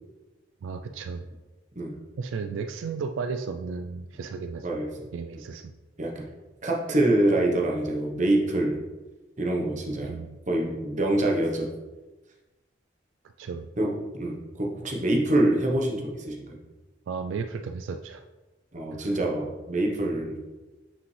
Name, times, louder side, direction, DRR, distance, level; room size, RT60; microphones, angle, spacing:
voice 1, 0.6-1.2 2.2-4.7 5.1-5.7 10.0-10.4 13.4-13.7 17.1-18.2 18.9-19.1, right 5 dB, 85° right, 7 dB, 0.3 m, -34 dB
voice 2, 6.6-8.8 9.4-10.2 10.5-11.7 13.8-16.6 18.7-20.5, right 1 dB, 40° right, -1 dB, 1.0 m, -25 dB
5.8 x 5.1 x 3.2 m, 1.2 s
head